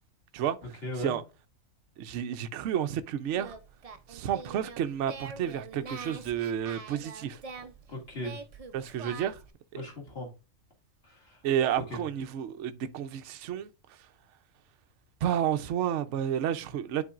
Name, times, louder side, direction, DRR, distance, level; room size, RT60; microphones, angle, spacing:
voice 1, 0.8-1.2 7.2-8.4 9.7-10.3 11.0-11.4 11.9-12.0, left 1 dB, 50° left, 2.5 m, -39 dB
voice 2, 2.0-3.6 4.1-7.4 8.7-9.4 9.7-9.8 11.4-13.7 15.2-17.0, right 10 dB, 70° right, 0.9 m, -30 dB
Singing, 3.3-9.5, right 4 dB, 40° right, 0.5 m, -45 dB
10.0 x 3.9 x 2.4 m
omnidirectional pair, 1.4 m